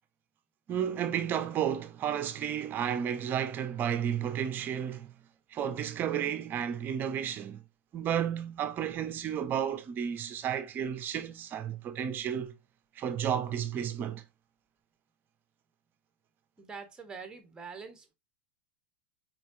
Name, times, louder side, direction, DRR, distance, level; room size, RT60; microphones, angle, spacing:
voice 1, 0.7-5.1 5.5-7.6 7.9-12.5 13.0-14.2, right 9 dB, 30° right, 0.7 m, -32 dB
voice 2, 16.6-18.1, right 5 dB, 10° right, 1.0 m, -44 dB
4.4 x 3.0 x 2.7 m
hypercardioid pair, 125°, 6 cm